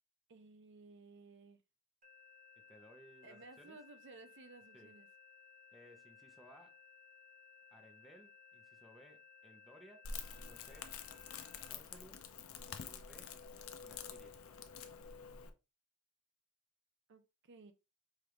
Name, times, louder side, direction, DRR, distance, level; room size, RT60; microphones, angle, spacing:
voice 1, 0.3-1.6 3.2-5.1 17.1-17.7, right 3 dB, 60° right, 0.5 m, -57 dB
sound 1, 2.0-11.7, left 6 dB, 40° right, 1.0 m, -61 dB
voice 2, 2.7-3.8 4.7-4.9 5.7-6.8 7.7-11.0 11.6-13.3 13.6-14.4, equal, ahead, 0.7 m, -61 dB
Crackle, 10.0-15.5, left 6 dB, 80° left, 0.6 m, -48 dB
5.0 x 2.5 x 3.0 m
head